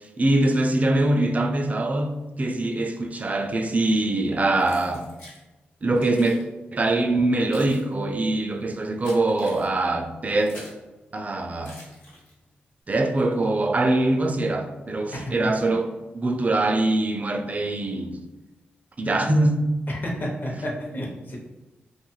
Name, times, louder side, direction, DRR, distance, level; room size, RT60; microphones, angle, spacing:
voice 1, 0.2-5.1 5.8-6.4 6.7-10.6 11.1-11.8 12.9-18.2 19.0-19.7 20.5-20.6, right 2 dB, 35° right, 0.4 m, -23 dB
Keys jangling, 4.6-5.4 6.0-6.4 7.2-10.9 11.6-12.5, left 1 dB, 80° left, 1.1 m, -46 dB
voice 2, 15.1-15.5 19.9-21.4, equal, 50° left, 0.8 m, -31 dB
2.5 x 2.3 x 3.0 m
cardioid pair, 50°, 4 cm